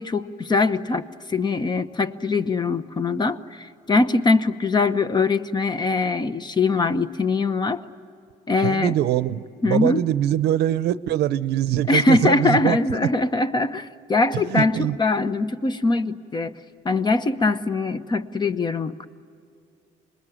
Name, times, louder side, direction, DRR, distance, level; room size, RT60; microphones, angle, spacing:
voice 1, 0.0-7.8 8.5-8.9 9.6-10.0 11.9-16.5 16.8-19.1, left 3 dB, 25° left, 11 dB, 0.9 m, -22 dB
voice 2, 8.6-12.8 14.5-15.0, right 12 dB, 80° right, 15 dB, 0.7 m, -23 dB
26.5 x 21.0 x 9.3 m, 2.5 s
cardioid pair, 110°, 17 cm